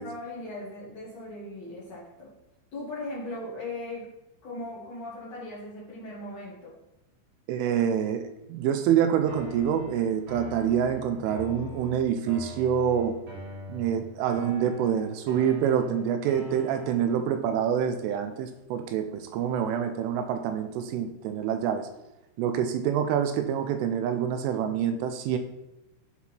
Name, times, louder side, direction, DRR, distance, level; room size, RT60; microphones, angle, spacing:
voice 1, 0.0-2.3 2.7-4.1 4.4-6.8, left 2 dB, 90° left, -7 dB, 1.4 m, -38 dB
voice 2, 7.5-13.2 13.7-21.9 22.4-25.4, right 8 dB, 85° right, 8 dB, 3.0 m, -26 dB
sound 1, 9.3-17.3, equal, 50° right, 1.9 m, -42 dB
12.5 x 4.3 x 4.3 m, 0.93 s
omnidirectional pair, 5.8 m